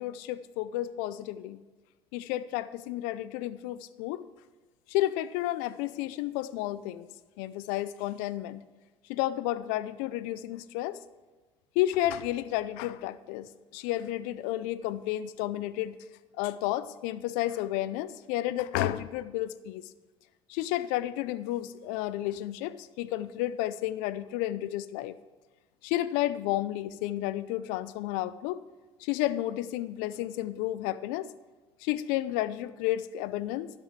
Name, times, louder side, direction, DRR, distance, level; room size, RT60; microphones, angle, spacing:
voice 1, 0.0-1.6 2.1-4.2 4.9-7.1 7.4-8.6 9.1-11.0 11.8-16.0 16.4-19.9 20.5-25.1 25.8-28.6 29.0-31.3 31.8-33.7, left 14 dB, 70° left, 16 dB, 0.6 m, -31 dB
12.0 x 5.4 x 7.4 m, 1.2 s
hypercardioid pair, 75°, 14 cm